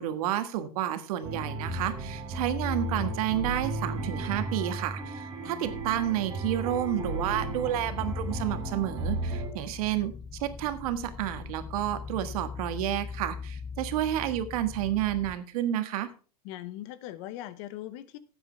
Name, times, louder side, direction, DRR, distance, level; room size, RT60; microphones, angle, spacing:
voice 1, 0.0-10.1 10.4-16.1, right 12 dB, 65° right, 1.6 m, -30 dB
sound 1, 1.2-9.5, right 1 dB, 20° right, 4.5 m, -34 dB
voice 2, 5.4-5.8 9.9-10.0 16.4-18.2, left 13 dB, 50° left, 1.0 m, -41 dB
sound 2, 7.7-15.3, left 5 dB, 15° left, 0.6 m, -41 dB
13.0 x 8.7 x 3.3 m
supercardioid pair, 130°, 20 cm